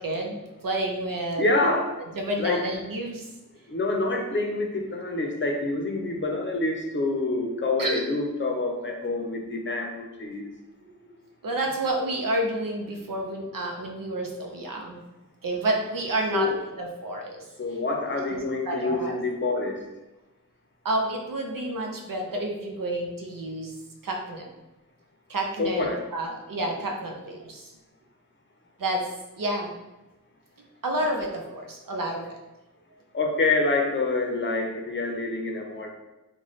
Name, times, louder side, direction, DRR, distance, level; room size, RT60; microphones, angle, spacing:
voice 1, 0.0-1.5 2.2-3.3 7.8-8.0 10.9-11.2 11.4-15.0 15.4-17.4 18.3-19.2 20.8-23.8 24.0-24.5 25.3-27.7 28.8-29.1 29.4-29.7 30.8-32.4, right 1 dB, 80° right, 1 dB, 0.6 m, -30 dB
voice 2, 1.4-2.0 2.4-2.7 3.7-10.5 16.3-16.6 17.6-19.8 25.6-26.0 33.1-35.9, left 3 dB, 35° left, 2 dB, 0.6 m, -27 dB
3.0 x 2.2 x 3.9 m, 1.0 s
wide cardioid pair, 65°, 33 cm